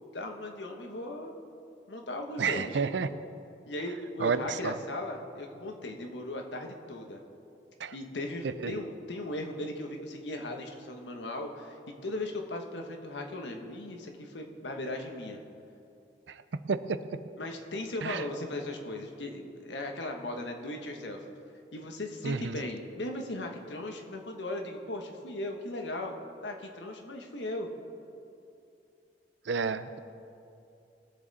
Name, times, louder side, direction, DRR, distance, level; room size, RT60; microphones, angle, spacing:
voice 1, 0.1-1.3 1.9-2.8 3.7-7.2 7.9-11.8 12.0-15.4 17.4-21.2 21.7-26.2 26.4-27.7, left 1 dB, 90° left, 3 dB, 1.3 m, -37 dB
voice 2, 2.4-3.1 4.2-4.7 7.8-7.9 8.6-8.7 16.7-17.0 18.0-18.2 22.2-22.6 29.5-30.0, right 5 dB, 90° right, 13 dB, 0.5 m, -30 dB
20.5 x 7.6 x 4.1 m, 2.6 s
head